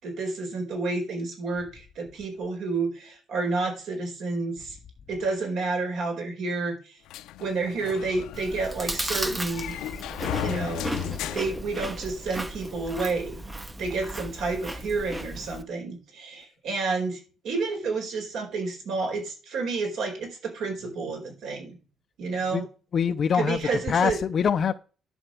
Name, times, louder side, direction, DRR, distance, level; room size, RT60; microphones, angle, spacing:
voice 1, 0.0-4.8 5.1-7.0 7.4-9.7 10.3-13.4 13.8-21.8 22.2-22.6 23.3-24.2, right 3 dB, 65° right, 4.6 m, -30 dB
sound 1, 7.1-12.4, left 13 dB, 85° left, 0.7 m, -36 dB
Chewing mastication, 8.3-15.6, right 1 dB, 10° right, 0.8 m, -35 dB
voice 2, 22.9-23.6 23.9-24.7, left 7 dB, 40° left, 0.6 m, -23 dB
11.0 x 4.3 x 7.6 m
cardioid pair, 150°, 0 cm